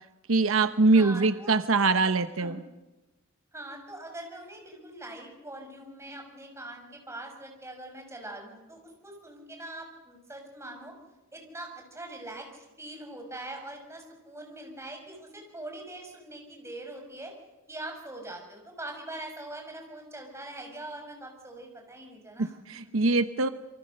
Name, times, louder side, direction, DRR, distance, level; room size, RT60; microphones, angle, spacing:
voice 1, 0.3-2.6 22.4-23.5, right 3 dB, 75° right, 11 dB, 1.0 m, -23 dB
voice 2, 0.9-1.6 2.4-2.6 3.5-10.9 11.3-17.3 17.7-22.6 22.8-23.0, right 1 dB, 15° right, 2 dB, 6.1 m, -42 dB
27.5 x 24.0 x 6.6 m, 1.0 s
head